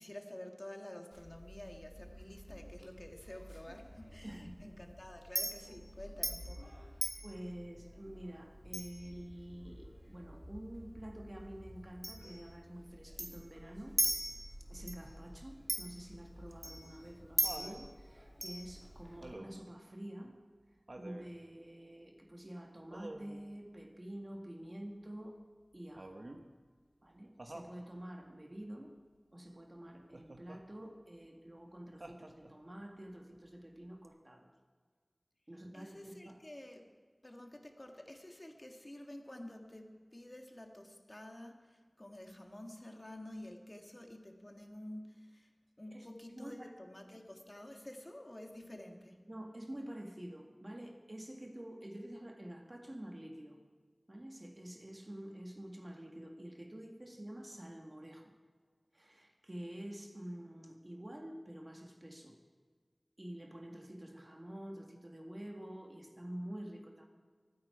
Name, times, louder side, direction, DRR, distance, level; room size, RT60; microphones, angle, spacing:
voice 1, 0.0-6.8 35.7-36.9 37.2-45.5 45.8-49.2, left 1 dB, 40° left, 3 dB, 1.8 m, -50 dB
Chink clink, 1.1-19.3, equal, 10° right, 2.6 m, -42 dB
voice 2, 4.2-4.5 7.2-14.0 14.7-20.4 21.0-25.4 25.7-26.3 27.0-28.9 29.3-34.5 35.5-36.4 45.9-46.7 49.3-53.6 54.1-58.3 58.9-62.4 63.2-67.1, right 1 dB, 40° right, 2 dB, 2.0 m, -48 dB
Laughter, 16.5-17.8 19.2-19.7 20.9-21.3 22.9-23.4 26.0-26.5 27.4-27.8 30.1-30.6 32.0-32.7 34.0-34.1, right 1 dB, 70° right, 1.1 m, -48 dB
24.0 x 9.6 x 4.7 m, 1.5 s
wide cardioid pair, 45°, 0 cm